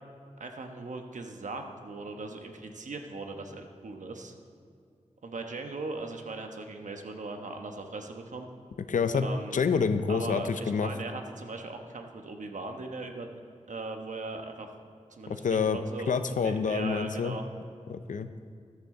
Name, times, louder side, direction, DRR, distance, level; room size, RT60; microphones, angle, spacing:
voice 1, 0.4-4.3 5.2-8.5 9.2-9.6 10.1-13.3 13.7-14.7 15.1-17.4, right 3 dB, 75° right, 4 dB, 1.1 m, -39 dB
voice 2, 8.9-9.3 9.5-10.9 15.3-15.8 16.1-17.4 17.9-18.3, left 5 dB, 90° left, 11 dB, 0.6 m, -27 dB
14.0 x 11.0 x 3.8 m, 2.3 s
wide cardioid pair, 55°, 13 cm